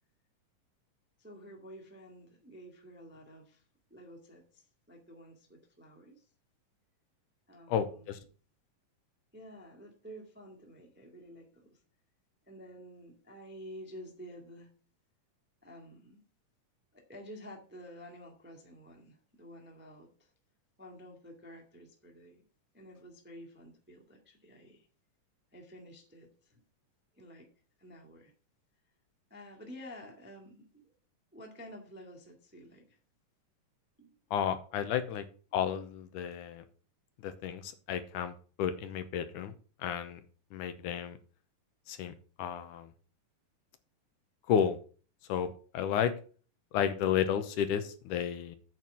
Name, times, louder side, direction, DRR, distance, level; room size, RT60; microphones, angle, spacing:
voice 1, 1.2-3.6 3.9-6.3 7.5-8.2 9.3-11.8 12.4-14.7 15.6-16.2 16.9-20.3 20.8-22.4 22.7-24.9 25.5-26.6 27.1-27.5 27.8-28.3 29.3-30.9 31.3-33.0 34.0-34.1, equal, 5° right, 2 dB, 0.8 m, -51 dB
voice 2, 7.7-8.2 34.3-35.3 35.5-36.6 37.2-39.5 39.8-40.2 40.5-41.2 41.9-42.1 42.4-42.9 44.5-44.8 45.3-46.1 46.7-48.6, left 8 dB, 75° left, 10 dB, 2.2 m, -32 dB
8.6 x 4.6 x 7.2 m, 0.39 s
omnidirectional pair, 3.8 m